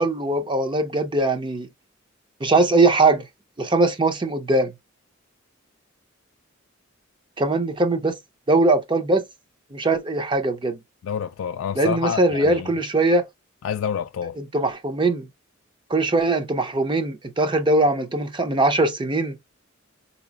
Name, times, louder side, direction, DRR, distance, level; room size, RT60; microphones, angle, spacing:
voice 1, 0.0-1.7 2.4-3.2 3.6-4.7 7.4-8.2 8.5-9.2 9.7-10.8 11.8-13.2 14.4-15.3 15.9-19.3, right 2 dB, 25° right, 0.6 m, -21 dB
voice 2, 11.0-12.7 13.6-14.4, left 8 dB, 75° left, 0.3 m, -28 dB
4.8 x 2.8 x 2.4 m
head